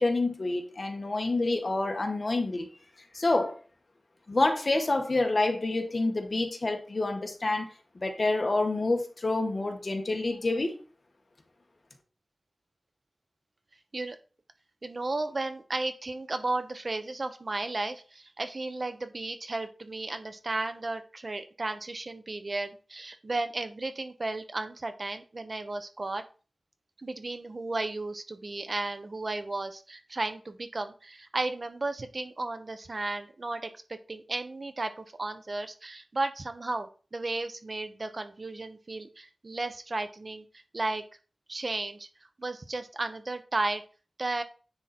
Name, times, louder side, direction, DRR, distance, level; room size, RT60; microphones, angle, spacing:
voice 1, 0.0-2.7 3.1-3.6 4.3-7.7 7.9-10.8, left 2 dB, 50° left, 4 dB, 1.5 m, -27 dB
voice 2, 14.8-26.2 27.0-40.4 40.7-41.0 41.5-42.1 42.4-43.8 44.2-44.4, right 2 dB, 50° right, 8 dB, 1.0 m, -34 dB
9.7 x 4.0 x 4.3 m, 0.37 s
wide cardioid pair, 80°, 0 cm